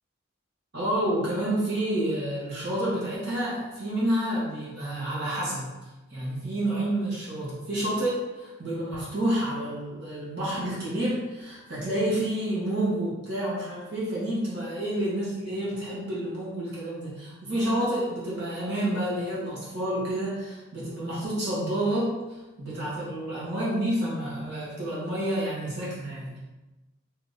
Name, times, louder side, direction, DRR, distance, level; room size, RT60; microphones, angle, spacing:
voice 1, 0.7-5.7 6.1-26.4, right 1 dB, 55° right, -7 dB, 1.2 m, -29 dB
3.5 x 2.7 x 4.0 m, 1.1 s
head